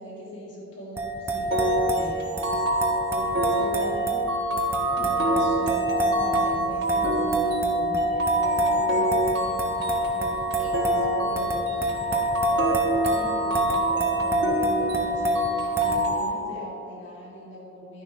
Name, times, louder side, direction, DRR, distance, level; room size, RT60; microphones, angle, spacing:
voice 1, 0.0-2.4 3.1-4.3 5.0-12.2 12.5-18.0, equal, 70° left, -4 dB, 2.2 m, -41 dB
sound 1, 1.0-16.0, equal, 15° right, 0.9 m, -27 dB
sound 2, 1.5-16.3, right 2 dB, 60° right, 1.5 m, -27 dB
11.5 x 10.0 x 3.1 m, 2.5 s
head